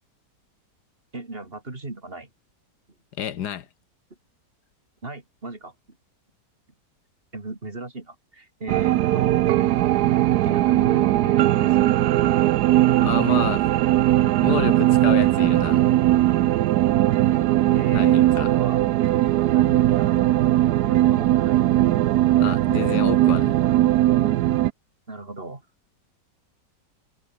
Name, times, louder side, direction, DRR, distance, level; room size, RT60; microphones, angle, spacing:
voice 1, 1.1-2.3 5.0-5.7 7.3-9.4 10.4-12.0 17.7-18.9 19.5-20.1 20.8-21.6 25.1-25.6, right 2 dB, 30° right, 3.1 m, -37 dB
voice 2, 3.2-3.7 13.0-13.7 14.4-15.8 17.9-18.5 22.4-23.5, left 9 dB, 70° left, 1.5 m, -29 dB
sound 1, 8.7-24.7, right 14 dB, 70° right, 1.1 m, -19 dB
omnidirectional pair, 1.9 m